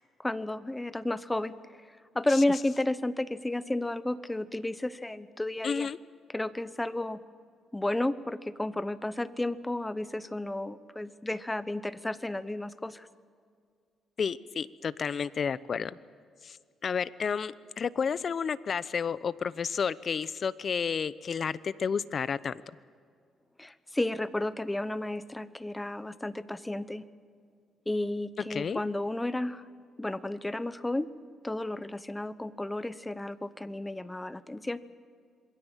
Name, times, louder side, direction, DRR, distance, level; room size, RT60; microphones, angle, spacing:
voice 1, 0.2-1.8 2.1-5.9 6.3-7.2 7.7-13.1 23.6-27.1 27.9-29.6 30.0-31.1 31.4-34.8, left 1 dB, 10° left, 14 dB, 1.0 m, -32 dB
voice 2, 5.6-6.0 14.2-16.0 16.4-16.6 16.8-22.6 28.5-28.8, left 6 dB, 50° left, 17 dB, 0.8 m, -31 dB
27.0 x 22.0 x 7.4 m, 2.2 s
cardioid pair, 90°, 0 cm